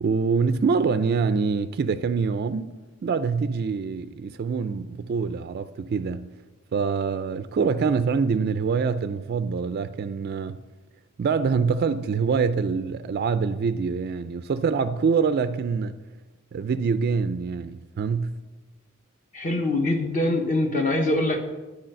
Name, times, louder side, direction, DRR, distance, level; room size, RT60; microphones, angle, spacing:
voice 1, 0.0-2.8 3.0-6.3 6.7-10.6 11.2-16.0 16.5-18.4, right 5 dB, 45° right, 0.3 m, -25 dB
voice 2, 19.3-21.4, left 1 dB, 35° left, 0.8 m, -23 dB
10.0 x 4.8 x 7.5 m
head